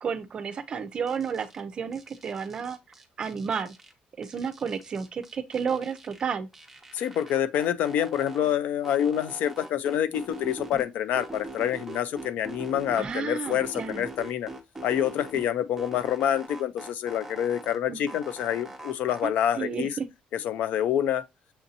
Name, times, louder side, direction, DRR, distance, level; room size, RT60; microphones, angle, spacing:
voice 1, 0.0-2.8 3.2-3.7 4.2-6.5 13.0-14.0 17.9-18.0 19.2-20.1, right 6 dB, 35° right, 0.5 m, -32 dB
sound 1, 1.1-1.6 1.9-3.9 4.2-6.2 6.5-8.5 8.8-10.9 11.1-13.2 13.5-15.5 15.8-17.8 18.1-19.2, right 2 dB, 10° right, 0.8 m, -42 dB
voice 2, 6.9-14.5 14.8-19.9 20.3-21.2, left 10 dB, 70° left, 0.5 m, -27 dB
7.0 x 2.6 x 2.7 m
cardioid pair, 165°, 3 cm